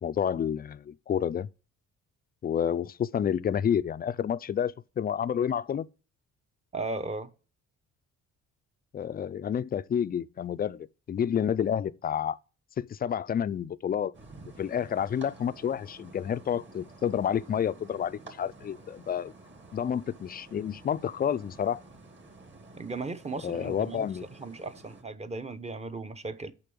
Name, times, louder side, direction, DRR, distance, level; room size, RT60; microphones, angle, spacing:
voice 1, 0.0-1.5 2.4-5.9 8.9-12.4 12.8-14.1 14.6-19.3 19.7-21.8 23.4-24.2, left 8 dB, 30° left, 0.4 m, -29 dB
voice 2, 6.7-7.3 22.8-24.1 24.4-26.5, right 3 dB, 20° right, 0.8 m, -36 dB
sound 1, 14.1-25.0, right 2 dB, 40° right, 2.3 m, -51 dB
6.8 x 5.6 x 6.9 m
cardioid pair, 90°, 30 cm